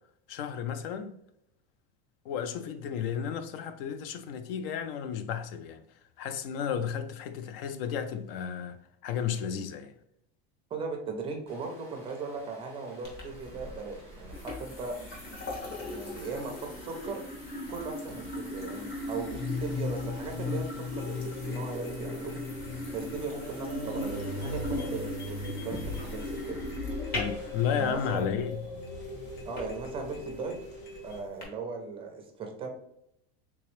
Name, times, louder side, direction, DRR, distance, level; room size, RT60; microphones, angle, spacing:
voice 1, 0.3-1.2 2.2-5.8 6.2-9.9 27.1-28.6, left 8 dB, 70° left, 0.5 m, -33 dB
voice 2, 10.7-15.0 15.9-17.2 17.7-22.4 22.9-26.6 27.7-28.3 29.4-30.6 31.0-32.7, right 4 dB, 20° right, 0.4 m, -38 dB
Rain, 11.5-28.1, right 1 dB, 10° left, 0.9 m, -57 dB
sound 1, 13.0-31.4, left 1 dB, 30° left, 1.2 m, -39 dB
sound 2, 19.2-31.2, left 2 dB, 55° left, 1.3 m, -39 dB
3.5 x 3.0 x 3.0 m
supercardioid pair, 160°, 30 cm